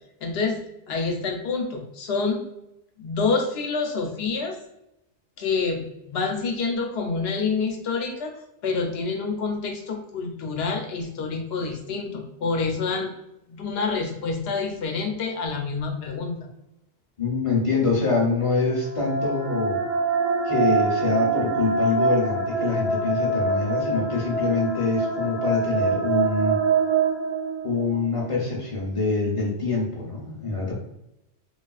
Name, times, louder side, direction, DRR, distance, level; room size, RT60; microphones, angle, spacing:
voice 1, 0.2-0.6 0.9-2.4 3.0-4.6 5.4-8.3 8.6-13.1 13.5-16.5, left 4 dB, 70° left, 3 dB, 0.8 m, -27 dB
voice 2, 17.2-19.8 20.4-26.6 27.6-30.7, left 3 dB, 35° left, -3 dB, 0.7 m, -25 dB
sound 1, 18.7-28.0, right 4 dB, 40° right, 0.4 m, -25 dB
3.2 x 2.4 x 2.3 m, 0.85 s
omnidirectional pair, 1.1 m